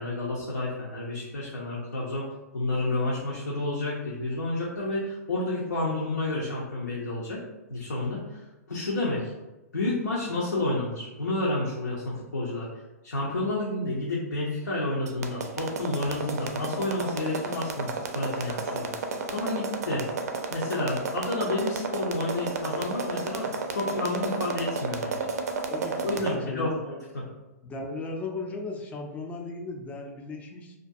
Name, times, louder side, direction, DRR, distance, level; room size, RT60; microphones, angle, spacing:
voice 1, 0.0-2.3 2.5-7.4 7.7-8.2 8.7-9.3 9.7-12.7 13.0-18.9 19.3-20.0 20.5-25.3 26.0-27.3, left 2 dB, 90° left, -5 dB, 0.6 m, -30 dB
sound 1, 15.1-26.3, right 4 dB, 70° right, 0.4 m, -31 dB
voice 2, 25.7-26.7 27.6-30.7, left 3 dB, 15° left, 1 dB, 0.3 m, -36 dB
2.4 x 2.2 x 2.5 m, 1.0 s
hypercardioid pair, 120°, 9 cm